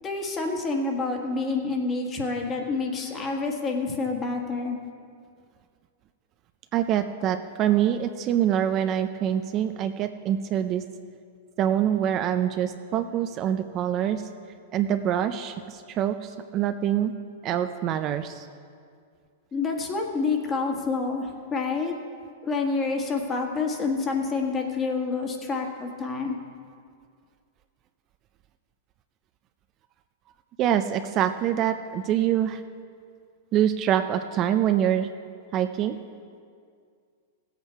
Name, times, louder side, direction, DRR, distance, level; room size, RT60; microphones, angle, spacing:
voice 1, 0.0-4.8 19.5-21.9 22.4-26.4, left 4 dB, 25° left, 2 dB, 1.6 m, -28 dB
voice 2, 6.7-10.8 11.6-14.2 14.7-17.1 17.4-18.5 30.6-32.6 33.5-35.1 35.5-36.0, right 10 dB, 35° right, 8 dB, 0.5 m, -25 dB
16.0 x 8.1 x 4.7 m, 2.2 s
hypercardioid pair, 130°, 0 cm